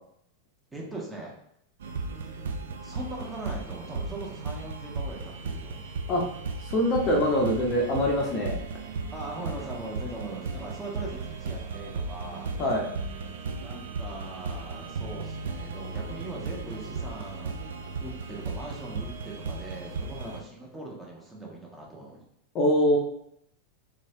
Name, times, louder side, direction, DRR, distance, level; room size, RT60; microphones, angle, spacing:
voice 1, 0.7-1.3 2.8-5.9 9.1-12.5 13.5-17.6 18.0-22.2, right 2 dB, 10° right, -3 dB, 0.8 m, -40 dB
sound 1, 1.8-20.4, right 4 dB, 60° right, 0.3 m, -36 dB
voice 2, 6.6-8.6 12.6-12.8 20.2-20.3 22.5-23.0, left 1 dB, 35° left, 0 dB, 0.6 m, -24 dB
3.1 x 3.0 x 2.7 m, 0.73 s
figure-of-eight pair, 90°, 0 cm